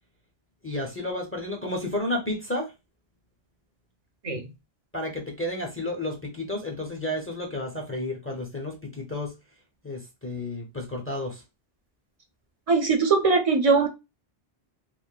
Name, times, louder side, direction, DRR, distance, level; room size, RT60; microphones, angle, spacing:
voice 1, 0.6-2.7 4.9-9.3 9.8-11.4, left 1 dB, 20° left, 0.4 m, -31 dB
voice 2, 12.7-13.9, right 4 dB, 55° right, 0.4 m, -21 dB
3.0 x 2.1 x 2.3 m
omnidirectional pair, 1.0 m